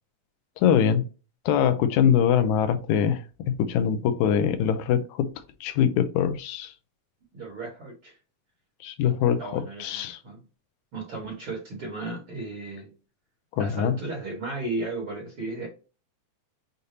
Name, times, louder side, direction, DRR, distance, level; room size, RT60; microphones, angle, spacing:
voice 1, 0.6-1.0 1.5-5.3 5.6-6.7 8.8-10.2 13.5-14.0, left 8 dB, 80° left, 1.9 m, -23 dB
voice 2, 7.3-8.1 9.4-10.4 10.9-12.9 13.6-15.7, right 2 dB, 50° right, 2.2 m, -35 dB
6.7 x 2.6 x 2.7 m
omnidirectional pair, 3.4 m